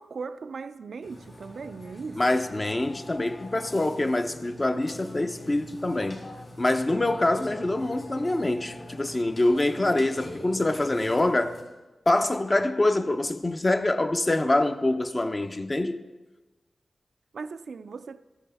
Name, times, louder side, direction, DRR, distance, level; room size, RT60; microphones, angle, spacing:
voice 1, 0.0-2.4 17.3-18.2, right 4 dB, 80° right, 0.4 m, -38 dB
Burping eructation, 1.0-11.6, left 1 dB, 50° left, 3.4 m, -44 dB
voice 2, 2.2-6.2 6.6-11.6 12.1-16.0, left 2 dB, 30° left, 0.6 m, -25 dB
13.0 x 10.5 x 3.4 m
cardioid pair, 60°, 0 cm